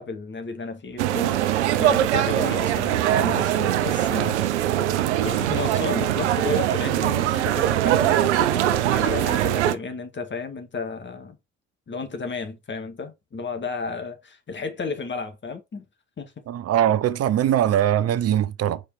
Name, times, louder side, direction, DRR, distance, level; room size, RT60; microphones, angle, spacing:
voice 1, 0.0-1.4 1.8-4.8 5.2-11.4 11.9-15.8 16.2-16.3, left 4 dB, 30° left, 2.0 m, -33 dB
sound 1, 1.0-9.8, right 12 dB, 80° right, 0.6 m, -22 dB
voice 2, 16.5-18.8, right 11 dB, 45° right, 0.8 m, -21 dB
5.3 x 4.8 x 4.7 m
hypercardioid pair, 55°, 34 cm